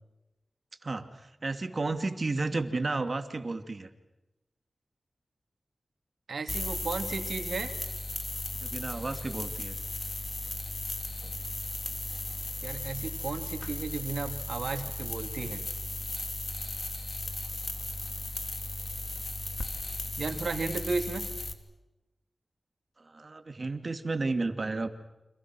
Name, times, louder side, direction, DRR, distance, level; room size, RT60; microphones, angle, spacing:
voice 1, 0.8-3.9 8.6-9.8 11.2-11.3 23.0-24.9, right 3 dB, 50° right, 8 dB, 2.5 m, -32 dB
voice 2, 6.3-7.7 12.6-15.6 20.2-21.2, right 4 dB, 85° right, 6 dB, 2.9 m, -34 dB
sound 1, 6.5-21.5, left 2 dB, 40° left, 2.8 m, -36 dB
29.5 x 26.5 x 6.3 m, 1.0 s
cardioid pair, 60°, 0 cm